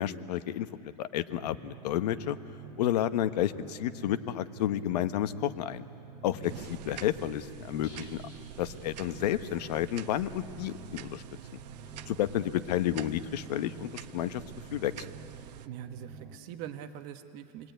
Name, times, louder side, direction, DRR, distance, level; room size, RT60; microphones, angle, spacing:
voice 1, 0.0-2.4 2.8-5.8 6.2-8.2 8.6-11.2 12.1-14.4 14.7-14.9, left 12 dB, 70° left, 11 dB, 1.1 m, -31 dB
sound 1, 1.3-16.4, right 5 dB, 15° right, 2.7 m, -48 dB
sound 2, 6.4-15.7, right 11 dB, 75° right, 1.0 m, -48 dB
sound 3, 7.8-9.6 9.9-10.0 10.3-10.4, left 1 dB, 20° left, 7.0 m, -57 dB
voice 2, 15.6-17.7, right 10 dB, 45° right, 7 dB, 1.3 m, -43 dB
28.0 x 21.0 x 9.3 m, 2.6 s
supercardioid pair, 155°, 21 cm